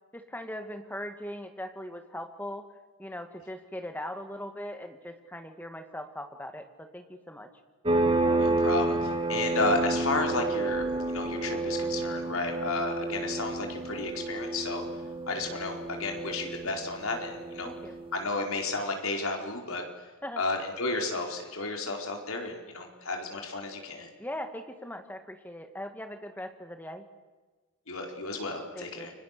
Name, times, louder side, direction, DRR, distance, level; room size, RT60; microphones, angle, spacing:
voice 1, 0.1-2.6 3.0-7.5 17.6-17.9 20.2-20.4 24.2-27.0 28.7-29.1, left 1 dB, 10° left, 6 dB, 2.0 m, -40 dB
sound 1, 7.9-18.2, right 2 dB, 25° right, 1.7 m, -30 dB
voice 2, 8.4-14.8 15.3-17.7 18.1-19.8 20.4-24.1 27.9-29.1, left 3 dB, 75° left, 3 dB, 4.4 m, -32 dB
29.5 x 24.5 x 6.8 m, 1.3 s
head